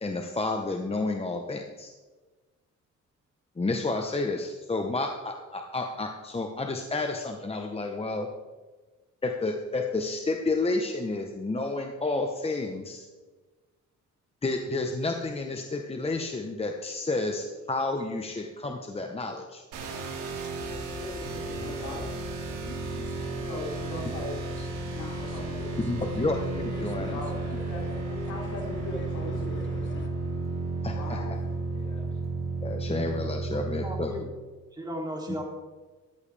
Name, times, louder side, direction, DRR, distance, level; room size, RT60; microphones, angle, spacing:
voice 1, 0.0-1.9 3.6-8.3 9.2-13.1 14.4-19.6 25.9-27.1 30.8-31.2 32.6-34.1, left 3 dB, 20° left, 4 dB, 1.0 m, -30 dB
sound 1, 19.7-34.0, right 3 dB, 85° right, 2.6 m, -33 dB
voice 2, 20.6-22.3 23.5-24.4 24.6-26.3 26.7-26.8 27.1-29.8 30.9-31.3 31.7-32.1, left 2 dB, 80° left, -2 dB, 4.1 m, -40 dB
sound 2, 20.6-30.1, left 3 dB, 40° left, 1.3 m, -43 dB
voice 3, 33.5-34.3 34.7-35.4, equal, 15° right, 0 dB, 2.9 m, -36 dB
14.0 x 11.0 x 3.4 m, 1.3 s
cardioid pair, 90°, 30 cm